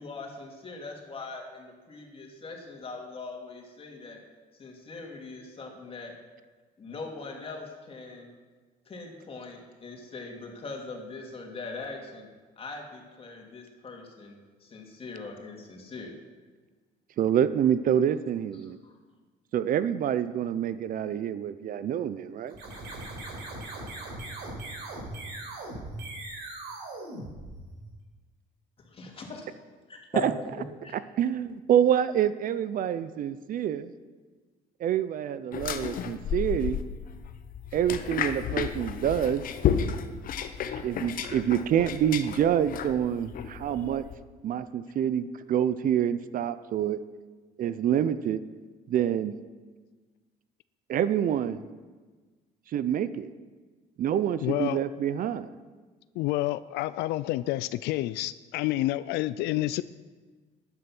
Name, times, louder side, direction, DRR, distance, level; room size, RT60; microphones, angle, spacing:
voice 1, 0.0-4.2 4.6-6.1 6.8-8.3 8.9-12.3 12.6-16.1 18.6-19.0 28.8-29.5 29.9-30.3 30.6-30.9, left 3 dB, 35° left, 1 dB, 2.9 m, -41 dB
voice 2, 17.2-18.8 19.5-22.6 30.1-30.3 31.2-33.9 34.8-36.8 37.7-39.4 40.8-44.0 44.4-47.0 47.6-48.4 48.9-49.3 50.9-51.6 52.7-53.3 54.0-55.5, right 9 dB, 55° right, 14 dB, 0.6 m, -27 dB
sound 1, 22.5-27.9, right 2 dB, 85° right, 4.2 m, -39 dB
sound 2, 35.5-44.2, left 8 dB, 55° left, 1.0 m, -32 dB
voice 3, 54.4-54.8 56.2-59.8, left 16 dB, 85° left, 15 dB, 0.4 m, -29 dB
12.5 x 9.8 x 6.0 m, 1.4 s
cardioid pair, 110°, 17 cm